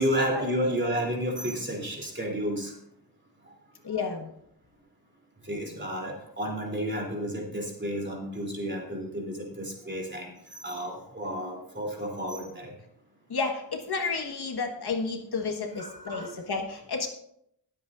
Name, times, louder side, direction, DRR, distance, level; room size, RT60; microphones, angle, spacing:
voice 1, 0.0-2.7 5.4-12.7 15.7-16.4, equal, 25° right, -1 dB, 3.3 m, -31 dB
voice 2, 3.8-4.3 13.3-17.1, left 4 dB, 65° left, 3 dB, 1.6 m, -31 dB
20.5 x 8.1 x 2.6 m, 0.74 s
wide cardioid pair, 100°, 42 cm